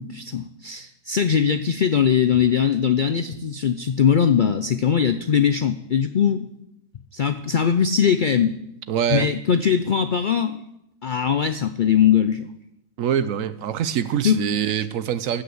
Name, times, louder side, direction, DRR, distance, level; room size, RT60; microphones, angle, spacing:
voice 1, 0.0-6.5 7.1-8.6 9.1-10.6 11.0-12.5 14.2-14.4 14.7-14.9, left 8 dB, 80° left, 0.4 m, -21 dB
voice 2, 8.9-9.3 13.0-15.4, right 9 dB, 70° right, 1.0 m, -24 dB
15.5 x 5.8 x 7.8 m
omnidirectional pair, 1.5 m